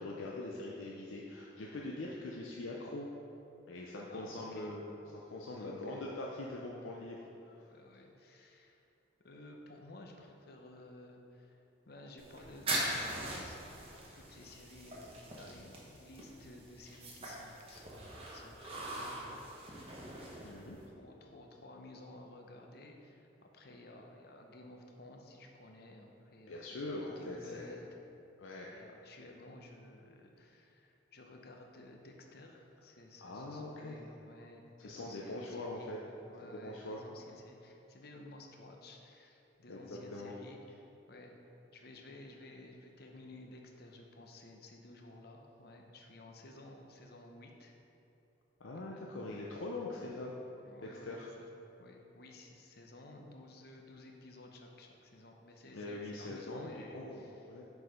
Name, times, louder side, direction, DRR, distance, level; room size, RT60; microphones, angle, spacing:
voice 1, 0.0-3.1 3.7-4.9 5.3-7.2 20.4-20.8 26.5-27.8 28.4-28.7 33.2-34.1 34.8-36.0 36.4-37.0 39.7-40.3 48.6-50.3 51.1-51.3 55.7-57.6, left 2 dB, 85° left, -3 dB, 0.6 m, -42 dB
voice 2, 4.1-4.8 5.5-6.1 7.6-8.8 9.2-11.6 11.8-20.0 20.3-20.6 21.0-27.9 28.7-36.0 36.3-41.3 41.7-47.7 48.8-49.0 49.9-50.1 50.6-51.5 51.8-57.5, left 1 dB, 50° left, 2 dB, 0.7 m, -54 dB
sound 1, 12.2-20.9, right 1 dB, 30° right, 1.1 m, -42 dB
6.3 x 4.7 x 5.1 m, 3.0 s
head